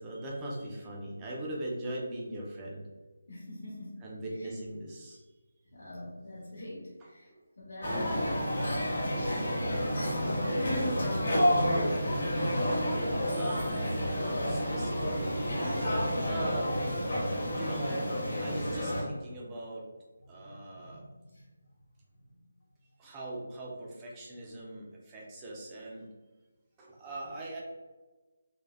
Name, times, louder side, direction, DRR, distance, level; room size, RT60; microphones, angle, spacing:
voice 1, 0.0-2.8 4.0-5.3 12.7-16.0 16.2-16.7 17.4-18.1 18.4-19.8 20.3-21.0 23.0-26.1 26.8-27.6, right 1 dB, 10° right, -4 dB, 0.4 m, -41 dB
voice 2, 3.3-4.0 4.3-4.5 5.6-7.3 7.6-8.3 10.0-11.9 20.2-21.5, left 1 dB, 75° left, -6 dB, 1.1 m, -42 dB
sound 1, 7.8-19.0, equal, 55° left, 1.2 m, -30 dB
3.2 x 2.1 x 2.4 m, 1.2 s
figure-of-eight pair, 175°, 0 cm